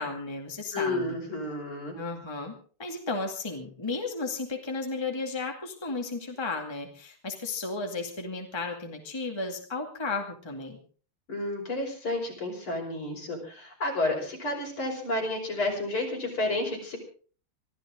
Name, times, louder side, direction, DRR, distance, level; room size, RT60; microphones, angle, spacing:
voice 1, 0.0-1.2 1.9-2.5 2.8-10.8, left 3 dB, 10° left, 2 dB, 2.2 m, -34 dB
voice 2, 0.7-1.9 11.3-17.0, left 2 dB, 70° left, 0 dB, 6.3 m, -31 dB
24.5 x 14.5 x 3.8 m, 0.42 s
omnidirectional pair, 2.4 m